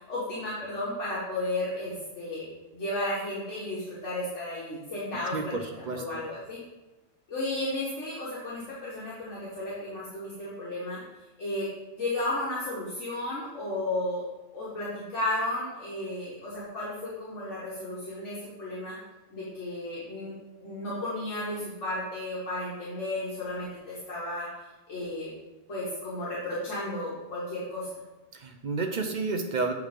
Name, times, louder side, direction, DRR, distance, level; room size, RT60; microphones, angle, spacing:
voice 1, 0.1-2.5 2.7-6.6 7.3-11.0 11.4-11.7 12.0-14.3 14.5-19.0 19.3-20.3 20.6-24.5 24.9-25.3 25.7-28.0, left 1 dB, 70° left, -7 dB, 1.6 m, -33 dB
voice 2, 5.1-6.2 28.3-29.7, right 3 dB, 50° right, 4 dB, 0.6 m, -31 dB
7.6 x 3.5 x 4.9 m, 1.1 s
omnidirectional pair, 1.3 m